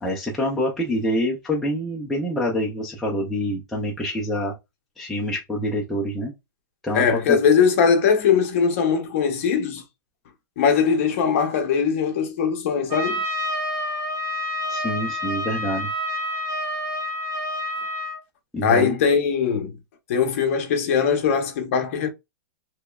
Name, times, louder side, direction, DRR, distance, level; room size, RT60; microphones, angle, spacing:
voice 1, 0.0-4.5 5.0-6.3 6.8-7.4 14.7-15.9 18.5-19.0, equal, ahead, 0.4 m, -26 dB
voice 2, 6.9-9.8 10.6-13.2 18.6-19.7 20.1-22.1, left 6 dB, 40° left, 0.7 m, -20 dB
Trumpet, 12.9-18.2, left 1 dB, 35° right, 1.2 m, -28 dB
3.3 x 2.9 x 2.3 m
hypercardioid pair, 170°, 11 cm